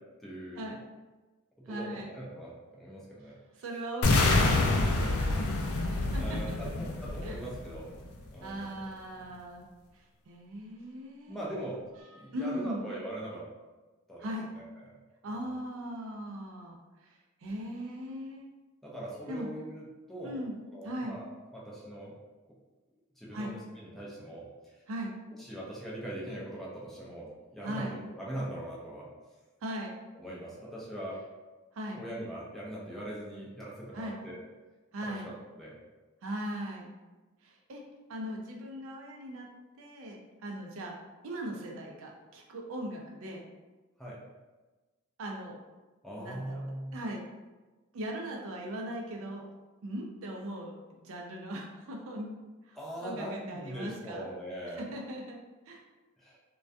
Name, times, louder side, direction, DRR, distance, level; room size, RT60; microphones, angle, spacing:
voice 1, 0.2-0.7 1.7-3.4 6.2-7.9 8.3-8.9 11.3-11.8 12.1-13.5 14.1-14.3 14.5-14.9 18.8-19.8 20.1-20.4 20.7-22.1 23.2-24.5 25.4-27.9 28.2-29.1 30.1-31.2 31.9-34.4 35.0-35.2 35.5-35.7 44.0-44.2 46.0-47.0 52.8-54.9 56.2-56.4, right 1 dB, ahead, -6 dB, 0.4 m, -41 dB
voice 2, 1.7-2.1 3.5-5.4 5.9-6.4 7.2-7.4 8.4-9.7 9.9-11.7 12.1-12.9 14.2-14.5 15.2-18.5 19.3-19.5 20.2-20.6 20.8-21.2 23.3-23.5 24.9-25.1 27.6-28.0 29.6-30.0 31.7-32.0 33.9-34.2 34.9-35.3 36.2-36.9 37.4-37.8 38.1-39.5 39.8-40.9 41.2-43.4 45.2-45.6 46.2-47.2 47.9-49.5 49.8-52.3 52.6-54.3 54.8-55.4 55.7-55.8, equal, 65° right, 1 dB, 0.4 m, -39 dB
sound 1, 4.0-8.0, left 2 dB, 85° left, 0.4 m, -27 dB
2.2 x 2.2 x 2.5 m, 1.2 s
head